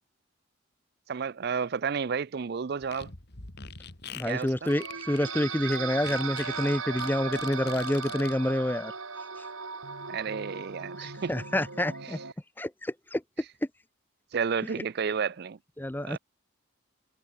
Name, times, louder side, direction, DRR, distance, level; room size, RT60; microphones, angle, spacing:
voice 1, 1.1-3.1 4.2-4.7 10.1-11.3 14.3-15.6 16.0-16.2, right 6 dB, 50° right, 0.4 m, -31 dB
Fart, 2.8-8.3, left 6 dB, 50° left, 2.3 m, -44 dB
voice 2, 4.1-8.9 11.0-12.2 12.6-13.2 15.8-16.2, left 1 dB, 10° left, 0.6 m, -28 dB
sound 1, 4.7-12.3, right 5 dB, 80° right, 4.6 m, -37 dB
head